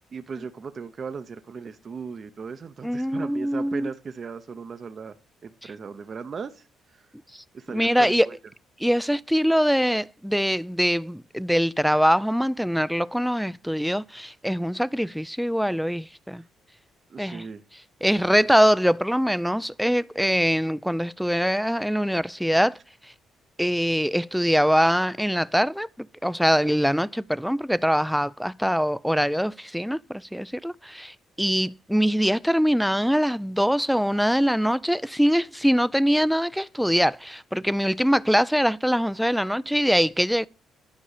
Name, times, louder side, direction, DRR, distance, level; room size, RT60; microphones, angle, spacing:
voice 1, 0.1-5.1 5.4-6.7 6.9-7.0 7.5-8.4 17.1-17.6, right 5 dB, 45° right, 0.8 m, -37 dB
voice 2, 2.8-3.9 7.3-8.3 8.8-16.4 17.2-17.4 18.0-22.8 23.6-25.9 26.2-40.5, equal, ahead, 0.4 m, -23 dB
10.5 x 5.4 x 4.9 m
supercardioid pair, 75°, 0 cm